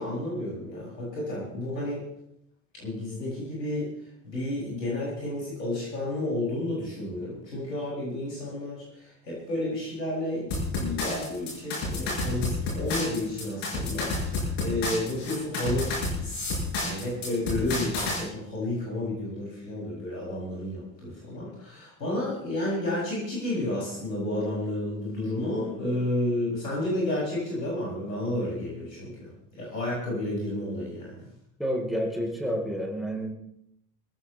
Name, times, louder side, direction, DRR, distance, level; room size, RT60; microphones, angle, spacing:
voice 1, 0.0-2.0 2.7-3.9 4.2-31.3, left 1 dB, 85° left, -6 dB, 7.2 m, -31 dB
sound 1, 10.5-18.2, left 2 dB, 55° left, 6.9 m, -30 dB
voice 2, 31.6-33.3, equal, ahead, 1 dB, 4.1 m, -29 dB
24.0 x 15.0 x 3.4 m, 0.76 s
figure-of-eight pair, 55°, 49 cm